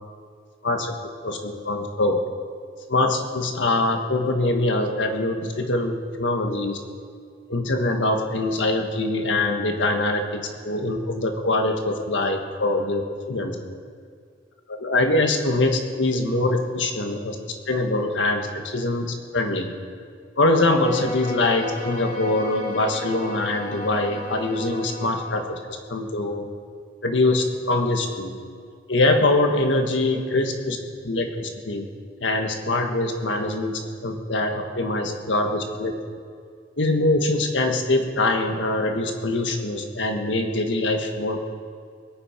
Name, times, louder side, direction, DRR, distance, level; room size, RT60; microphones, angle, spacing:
voice 1, 0.6-2.2 2.9-6.8 7.5-13.5 14.7-17.3 17.7-19.7 20.4-25.6 25.9-26.5 27.0-28.4 28.9-30.8 31.0-31.9 32.2-35.9 36.8-41.5, left 2 dB, 75° left, 4 dB, 1.6 m, -23 dB
Bowed string instrument, 20.5-25.4, left 2 dB, 50° left, 3.3 m, -35 dB
21.5 x 8.8 x 5.1 m, 2.1 s
head